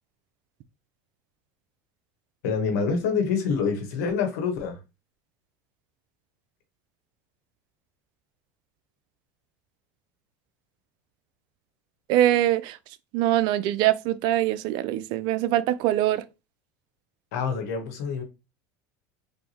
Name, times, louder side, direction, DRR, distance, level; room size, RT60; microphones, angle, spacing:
voice 1, 2.4-4.8 17.3-18.2, left 5 dB, 80° left, 1.0 m, -26 dB
voice 2, 12.1-12.8 13.1-16.2, right 13 dB, 60° right, 0.4 m, -23 dB
3.4 x 2.6 x 2.8 m
supercardioid pair, 105°, 9 cm